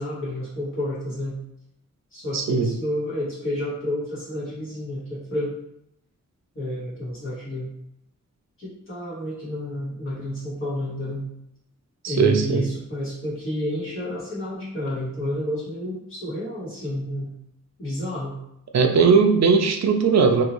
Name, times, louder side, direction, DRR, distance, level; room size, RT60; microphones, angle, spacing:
voice 1, 0.0-1.4 2.1-5.5 6.5-7.7 8.6-11.3 12.1-17.3 17.8-18.4, left 1 dB, 40° left, -9 dB, 1.4 m, -30 dB
voice 2, 2.3-2.7 12.0-12.7 18.7-20.4, right 5 dB, 60° right, 5 dB, 0.4 m, -18 dB
2.7 x 2.5 x 3.0 m, 0.78 s
wide cardioid pair, 160°, 31 cm